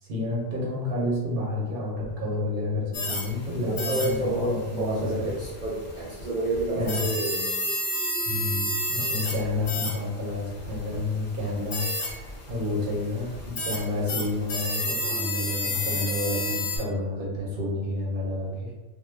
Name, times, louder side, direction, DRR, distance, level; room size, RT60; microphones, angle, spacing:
voice 1, 0.0-5.1 6.8-7.1 8.3-18.7, left 2 dB, 50° right, -4 dB, 0.8 m, -30 dB
sound 1, 2.9-16.8, left 1 dB, 55° left, 0.6 m, -32 dB
voice 2, 3.5-7.6, right 2 dB, 70° right, -7 dB, 0.4 m, -29 dB
2.3 x 2.1 x 3.1 m, 1.1 s
omnidirectional pair, 1.4 m